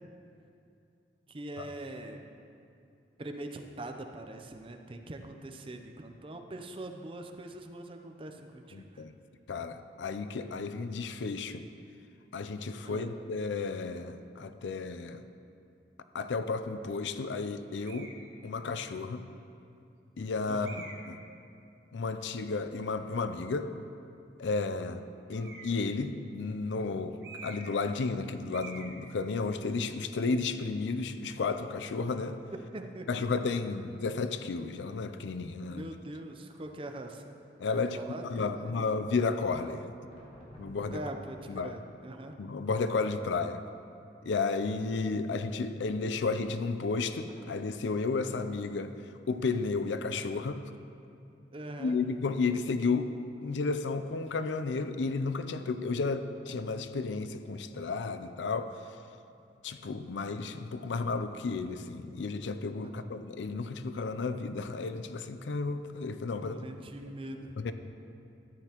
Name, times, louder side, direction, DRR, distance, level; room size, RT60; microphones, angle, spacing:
voice 1, 1.3-2.3 3.2-9.0 12.9-13.1 20.5-20.9 32.7-33.1 35.7-37.2 37.9-38.7 40.9-42.4 51.5-52.0 62.8-63.1 66.4-67.6, right 1 dB, 30° right, 5 dB, 0.6 m, -42 dB
voice 2, 8.7-9.1 9.5-11.6 12.3-15.2 16.1-18.1 18.4-19.3 20.2-21.2 21.9-23.7 24.4-25.0 25.3-32.4 33.1-35.9 37.6-38.0 38.2-39.9 40.6-41.0 41.5-41.7 42.4-43.6 44.2-48.9 49.3-50.7 51.8-53.1 53.4-58.7 59.6-66.7 67.6-67.7, left 4 dB, 80° left, 10 dB, 0.5 m, -32 dB
sound 1, 17.8-18.2 19.0-19.1 20.6-21.2 25.3-25.9 27.2-27.8 28.1-28.2 28.5-28.9, right 3 dB, 65° right, 1.2 m, -46 dB
sound 2, 40.0-41.1 42.7-42.9 44.9-45.1 47.3-47.5, equal, 30° left, 1.9 m, -51 dB
13.5 x 9.2 x 3.0 m, 2.6 s
head